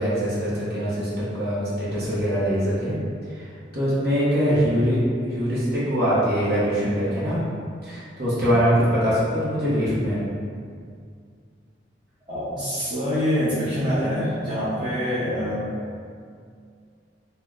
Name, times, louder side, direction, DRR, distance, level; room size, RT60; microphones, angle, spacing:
voice 1, 0.0-3.0 3.3-7.4 7.8-10.2, equal, 60° right, -9 dB, 0.8 m, -23 dB
voice 2, 12.3-15.7, equal, 25° right, -12 dB, 0.6 m, -25 dB
3.3 x 2.2 x 2.4 m, 2.2 s
head